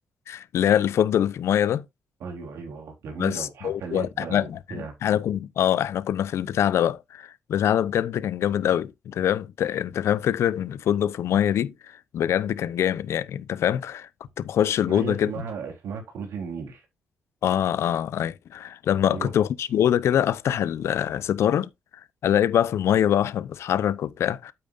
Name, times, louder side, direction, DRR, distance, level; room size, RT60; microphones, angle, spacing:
voice 1, 0.3-1.8 3.2-14.1 14.4-15.3 17.4-21.7 22.2-24.5, left 10 dB, 75° left, 0.7 m, -24 dB
voice 2, 2.2-5.0 14.9-16.8 19.0-19.3, right 5 dB, 80° right, 3.7 m, -35 dB
8.9 x 8.5 x 2.6 m
supercardioid pair, 60°, 5 cm